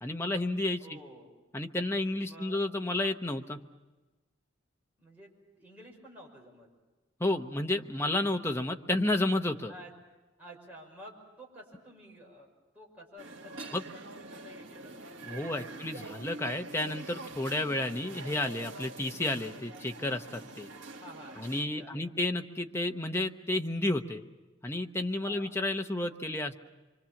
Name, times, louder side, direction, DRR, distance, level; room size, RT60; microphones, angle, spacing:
voice 1, 0.0-1.0 1.5-3.6 7.2-9.7 13.7-13.8 15.3-20.7 21.4-24.2 24.6-26.5, left 1 dB, 15° left, 4 dB, 1.0 m, -31 dB
voice 2, 0.8-1.3 2.2-2.7 5.0-6.7 9.7-9.9 10.4-12.5 12.7-15.0 15.4-15.8 21.0-22.1 25.2-25.6, equal, 10° right, -3 dB, 5.9 m, -51 dB
sound 1, 13.2-21.7, right 2 dB, 85° right, 1.9 m, -45 dB
25.5 x 24.5 x 7.2 m, 1.2 s
head